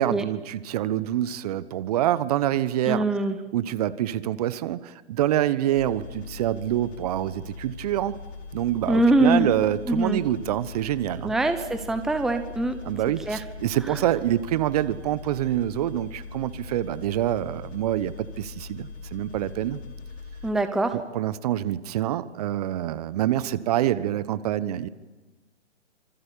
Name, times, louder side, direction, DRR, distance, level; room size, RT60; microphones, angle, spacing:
voice 1, 0.0-3.0 3.5-8.2 8.5-11.3 12.8-19.8 21.1-24.9, right 12 dB, 35° right, 16 dB, 1.1 m, -26 dB
voice 2, 2.9-3.4 8.9-9.5 9.9-10.2 11.2-12.8 13.3-13.4 13.9-14.0 20.4-21.0, right 2 dB, ahead, 8 dB, 0.9 m, -23 dB
sound 1, 5.7-20.5, left 4 dB, 65° left, 5.9 m, -41 dB
26.5 x 25.5 x 8.4 m, 1.2 s
hypercardioid pair, 140°, 35 cm